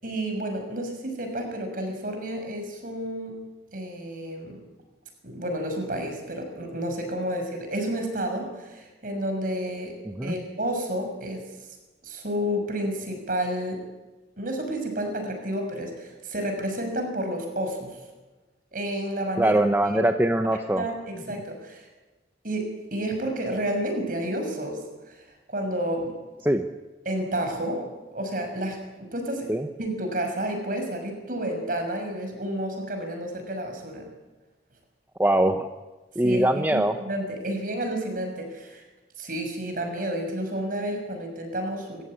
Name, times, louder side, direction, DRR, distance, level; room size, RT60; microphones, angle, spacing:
voice 1, 0.0-3.4 3.7-4.6 5.2-9.9 10.2-11.4 12.0-13.8 14.4-18.0 18.7-19.6 19.9-20.0 20.7-21.9 22.4-26.1 27.0-29.5 29.8-34.1 36.2-38.8 39.2-42.0, right 1 dB, 50° right, 4 dB, 6.2 m, -30 dB
voice 2, 10.1-10.4 19.4-20.8 26.4-26.6 29.5-29.7 35.2-35.7 36.1-36.9, right 1 dB, 10° right, 6 dB, 0.9 m, -22 dB
26.0 x 15.5 x 10.0 m, 1.2 s
head